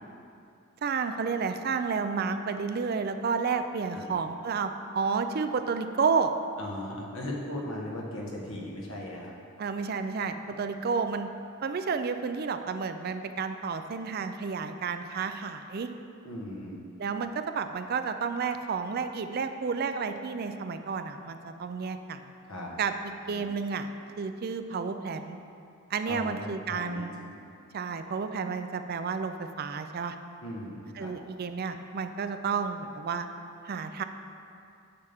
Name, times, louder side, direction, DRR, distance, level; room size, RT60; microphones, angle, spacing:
voice 1, 0.8-6.3 9.6-11.3 11.6-15.9 17.0-22.2 22.8-22.9 23.3-23.9 24.2-25.4 25.9-27.1 27.7-30.2 31.0-33.3 33.6-34.0, right 5 dB, 45° right, 8 dB, 0.4 m, -31 dB
voice 2, 6.6-9.3 10.4-10.6 16.2-16.8 22.5-22.7 23.3-23.5 26.1-27.1 30.4-31.1, left 1 dB, 75° left, -2 dB, 1.4 m, -38 dB
9.6 x 7.0 x 3.5 m, 2.5 s
head